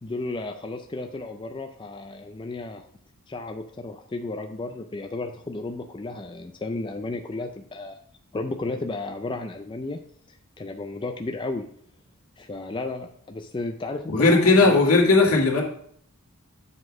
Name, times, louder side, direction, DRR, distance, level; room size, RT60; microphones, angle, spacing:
voice 1, 0.0-2.8 3.3-8.0 8.3-10.0 10.6-11.7 12.4-14.8, left 2 dB, 20° left, 5 dB, 0.4 m, -33 dB
voice 2, 14.1-15.6, left 3 dB, 70° left, -1 dB, 2.1 m, -17 dB
7.8 x 3.9 x 6.0 m, 0.64 s
head